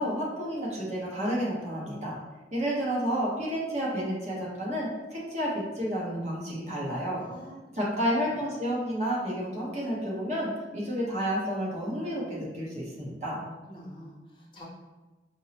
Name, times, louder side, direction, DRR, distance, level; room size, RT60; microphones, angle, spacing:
voice 1, 0.0-2.2 2.5-7.2 7.7-13.4, equal, 40° right, -5 dB, 0.9 m, -30 dB
voice 2, 7.1-8.2 13.4-14.6, equal, 25° left, -4 dB, 0.6 m, -46 dB
5.3 x 2.0 x 2.7 m, 1.1 s
head